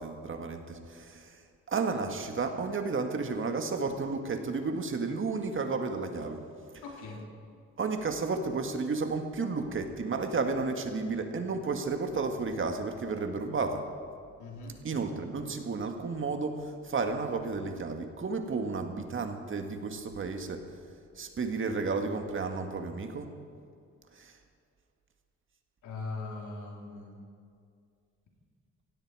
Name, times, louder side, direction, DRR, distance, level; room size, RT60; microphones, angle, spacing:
voice 1, 0.0-1.4 1.7-6.4 6.7-6.8 7.8-13.9 14.8-20.7 21.1-23.3 24.1-24.4, right 4 dB, 40° right, 6 dB, 1.7 m, -32 dB
voice 2, 6.8-7.3 14.4-14.8 25.8-27.2, left 3 dB, 80° left, -1 dB, 3.5 m, -40 dB
17.0 x 16.5 x 4.8 m, 2.3 s
cardioid pair, 90°, 30 cm